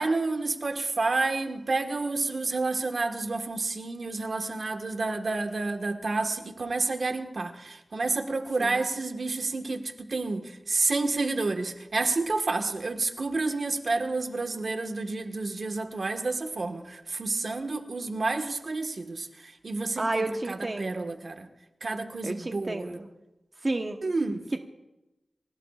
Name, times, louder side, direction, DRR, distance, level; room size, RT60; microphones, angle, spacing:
voice 1, 0.0-21.5 21.8-23.0 24.0-24.4, right 3 dB, 65° right, 5 dB, 1.5 m, -30 dB
voice 2, 20.0-21.1 22.2-23.1 23.6-24.0, right 2 dB, 40° right, 4 dB, 1.1 m, -31 dB
27.0 x 17.0 x 2.5 m, 1.0 s
cardioid pair, 55°, 0 cm